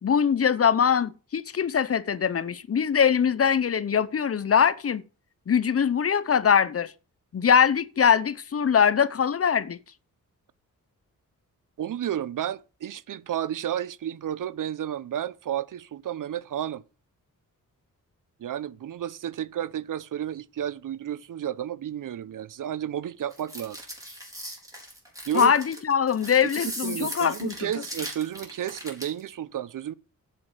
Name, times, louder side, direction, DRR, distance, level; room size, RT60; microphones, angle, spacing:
voice 1, 0.0-5.0 5.5-6.9 7.3-9.8 25.3-27.5, left 7 dB, 45° left, 0.7 m, -22 dB
voice 2, 11.8-16.8 18.4-23.8 25.3-25.5 26.8-29.9, right 10 dB, 70° right, 0.7 m, -32 dB
sound 1, 23.3-29.2, equal, 10° right, 5.0 m, -38 dB
8.0 x 7.6 x 6.6 m
wide cardioid pair, 100°, 33 cm